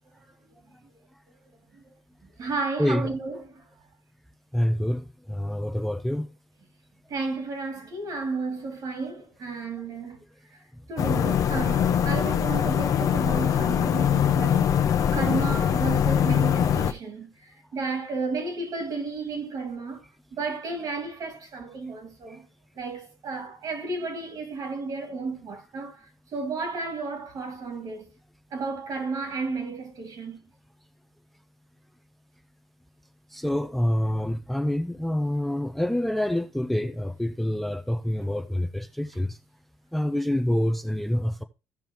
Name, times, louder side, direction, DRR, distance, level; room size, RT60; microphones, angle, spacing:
voice 1, 2.2-3.6 7.1-10.2 10.5-10.6 10.9-14.7 15.1-20.0 20.3-22.4 22.7-28.1 28.5-30.4, right 4 dB, 55° right, 2.6 m, -33 dB
voice 2, 4.5-6.3 22.3-22.4 33.3-39.4 39.9-41.4, left 1 dB, ahead, 0.5 m, -27 dB
sound 1, 11.0-16.9, left 8 dB, 50° left, 0.8 m, -23 dB
15.0 x 5.4 x 3.0 m
cardioid pair, 110°, 7 cm